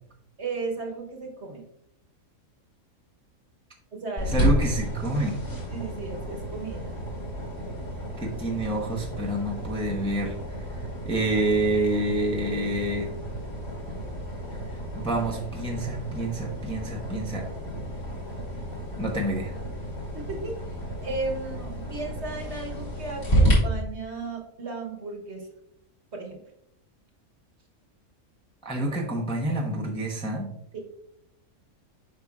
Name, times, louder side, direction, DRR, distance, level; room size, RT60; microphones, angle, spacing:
voice 1, 0.4-1.6 3.9-4.5 5.7-6.9 13.5-13.6 20.1-20.6 21.0-25.5 26.1-26.4 30.7-30.8, right 3 dB, 50° right, 1 dB, 1.3 m, -35 dB
sound 1, 4.2-23.5, equal, 45° left, 3.0 m, -31 dB
voice 2, 4.3-5.4 8.2-10.4 11.0-13.1 14.9-17.5 19.0-19.5 28.6-30.5, right 1 dB, 5° left, -1 dB, 0.7 m, -28 dB
7.6 x 5.5 x 2.4 m, 0.76 s
omnidirectional pair, 1.5 m